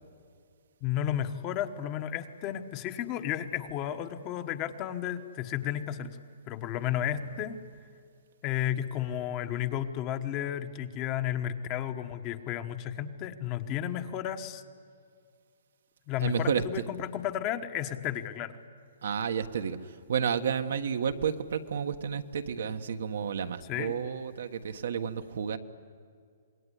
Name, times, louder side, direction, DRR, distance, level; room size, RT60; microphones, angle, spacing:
voice 1, 0.8-6.2 6.5-7.6 8.4-14.6 16.1-18.6 23.7-24.0, left 10 dB, 25° left, 8 dB, 1.2 m, -33 dB
voice 2, 16.2-16.8 19.0-25.6, right 7 dB, 70° right, 7 dB, 1.4 m, -31 dB
26.5 x 21.0 x 10.0 m, 2.3 s
hypercardioid pair, 160°, 0 cm